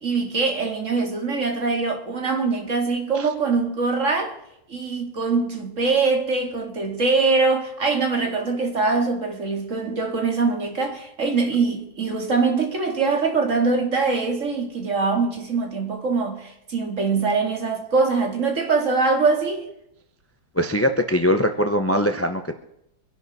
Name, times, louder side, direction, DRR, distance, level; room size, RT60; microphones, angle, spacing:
voice 1, 0.0-4.3 4.7-19.6, right 4 dB, 45° right, 2.4 m, -23 dB
voice 2, 20.5-22.5, equal, 20° left, 0.4 m, -21 dB
24.5 x 11.0 x 4.2 m
omnidirectional pair, 1.9 m